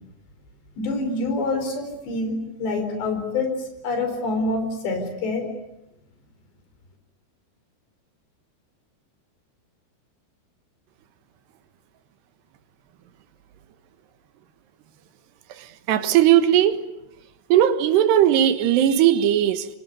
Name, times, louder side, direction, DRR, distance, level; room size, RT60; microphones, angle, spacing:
voice 1, 0.8-5.5, left 2 dB, 90° left, 6 dB, 6.8 m, -26 dB
voice 2, 15.5-16.8 17.5-19.7, right 11 dB, 80° right, 11 dB, 3.4 m, -18 dB
25.0 x 24.5 x 9.6 m, 0.88 s
omnidirectional pair, 4.8 m